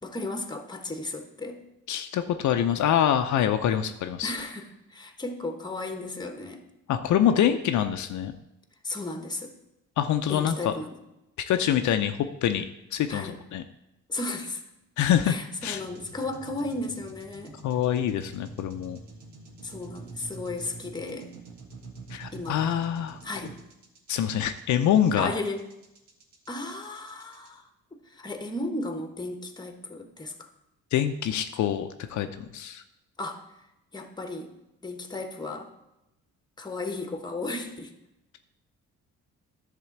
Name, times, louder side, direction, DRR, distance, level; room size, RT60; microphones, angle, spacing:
voice 1, 0.0-1.6 4.2-6.6 8.8-9.5 10.3-11.0 13.1-13.4 14.1-14.6 15.2-17.6 19.6-21.3 22.3-22.6 23.2-23.6 25.2-25.6 26.5-27.7 28.0-30.5 33.2-33.7 33.9-34.5 34.8-35.7 36.6-37.9, left 2 dB, 15° left, 6 dB, 1.2 m, -34 dB
voice 2, 1.9-4.3 6.9-8.4 10.0-10.7 11.5-12.7 12.9-13.6 15.0-15.3 15.6-15.8 17.6-19.0 22.1-23.2 24.1-25.3 30.9-32.8, left 10 dB, 70° left, 7 dB, 0.6 m, -25 dB
sound 1, 15.6-27.5, right 3 dB, 80° right, 1.6 m, -46 dB
10.5 x 3.8 x 7.1 m, 0.90 s
cardioid pair, 90°, 30 cm